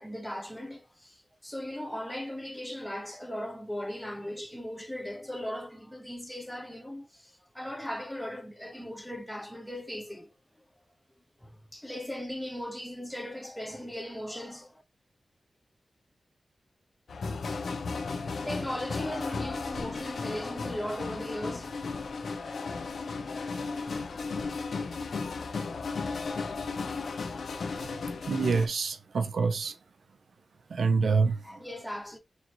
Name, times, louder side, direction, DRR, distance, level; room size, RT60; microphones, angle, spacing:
voice 1, 0.0-10.3 11.4-14.8 18.3-21.8 31.4-32.2, equal, 5° left, 1.4 m, -38 dB
sound 1, 17.1-28.7, left 4 dB, 80° left, 0.7 m, -35 dB
voice 2, 28.3-29.7 30.7-31.4, right 4 dB, 80° right, 0.6 m, -26 dB
4.0 x 3.1 x 3.0 m
wide cardioid pair, 80°, 0 cm